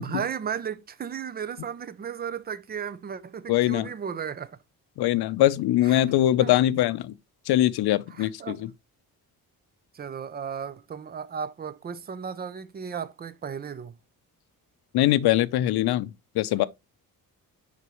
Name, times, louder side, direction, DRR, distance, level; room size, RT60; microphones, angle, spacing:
voice 1, 0.0-4.6 5.9-6.0 6.4-6.5 8.1-8.6 9.9-14.0, right 7 dB, 25° right, 0.4 m, -35 dB
voice 2, 3.5-3.9 5.0-7.1 7.5-8.7 14.9-16.1 16.4-16.6, left 13 dB, 80° left, 0.6 m, -22 dB
6.6 x 5.2 x 3.0 m
cardioid pair, 170°, 38 cm